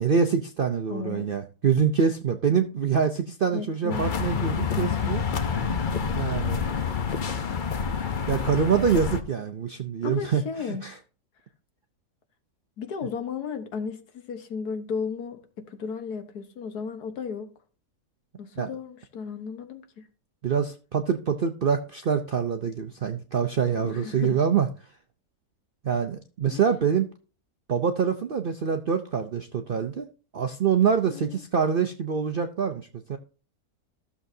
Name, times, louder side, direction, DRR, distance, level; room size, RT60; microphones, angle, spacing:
voice 1, 0.0-5.2 6.2-6.6 8.3-10.9 18.6-18.7 20.4-24.7 25.8-27.1 27.7-30.1 30.3-33.2, right 6 dB, 60° right, 0.5 m, -25 dB
voice 2, 0.9-1.4 3.5-4.0 4.3-5.4 10.0-10.8 12.8-17.5 18.4-20.1 23.8-24.4 26.5-26.6 31.1-31.4, left 6 dB, 80° left, 1.7 m, -35 dB
sound 1, 3.9-9.2, left 6 dB, 45° left, 0.7 m, -28 dB
13.5 x 7.0 x 2.7 m
omnidirectional pair, 1.7 m